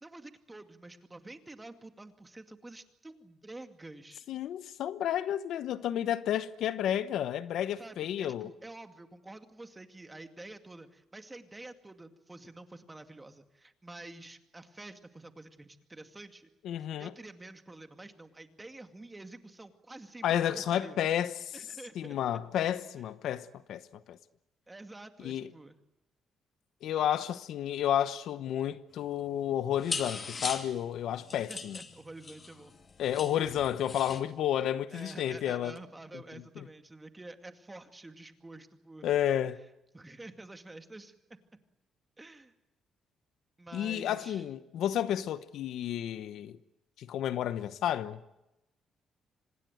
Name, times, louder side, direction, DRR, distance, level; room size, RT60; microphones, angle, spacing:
voice 1, 0.0-4.3 7.8-16.5 17.0-21.0 21.5-22.4 23.0-23.1 24.7-25.8 31.3-32.7 33.5-33.6 34.9-39.1 39.9-41.6 42.2-42.5 43.6-44.5, right 2 dB, 15° right, 2.3 m, -49 dB
voice 2, 4.3-8.5 16.6-17.1 20.2-21.6 22.0-23.8 24.1-24.2 25.2-25.5 26.8-31.8 33.0-35.8 36.6-36.7 39.0-39.6 43.7-46.6 47.0-48.2, left 10 dB, 75° left, 1.0 m, -31 dB
sound 1, 29.0-29.2 29.5-34.2, left 4 dB, 40° left, 2.6 m, -40 dB
26.0 x 19.5 x 9.2 m
cardioid pair, 90°, 0 cm